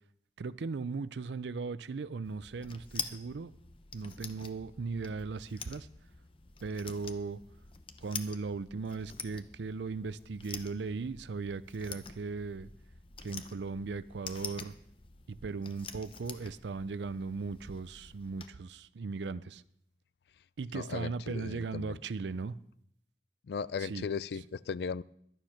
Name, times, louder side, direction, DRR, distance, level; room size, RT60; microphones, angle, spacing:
voice 1, 0.4-3.5 3.9-5.9 6.6-7.4 8.0-12.7 13.2-14.8 15.3-19.6 20.6-22.5 23.8-24.1 24.3-24.4, right 4 dB, 80° right, 0.5 m, -38 dB
sound 1, 2.2-18.5, left 6 dB, 30° left, 0.7 m, -47 dB
voice 2, 20.7-22.0 23.5-25.0, left 5 dB, 65° left, 0.3 m, -37 dB
12.0 x 9.0 x 5.8 m
head